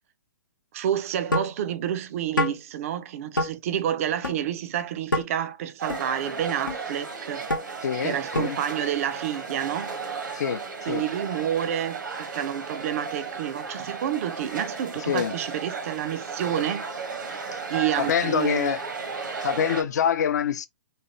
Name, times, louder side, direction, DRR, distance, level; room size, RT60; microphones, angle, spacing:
voice 1, 0.7-7.4 8.0-10.0 10.9-16.9 17.7-18.8, right 10 dB, 45° right, 0.4 m, -29 dB
sound 1, 1.3-1.6 2.4-2.6 3.4-3.5 4.2-4.4 5.1-5.3 5.9-6.0 6.7-6.8 7.5-7.6 8.4-8.6, left 1 dB, 90° left, 0.8 m, -25 dB
sound 2, 5.8-19.8, right 4 dB, 75° right, 1.0 m, -35 dB
voice 2, 7.8-8.6 10.3-11.0 15.1-15.3 17.5-17.6 18.0-18.8 19.4-20.7, left 9 dB, 60° left, 0.5 m, -26 dB
3.3 x 2.3 x 2.8 m
figure-of-eight pair, 125°, 10 cm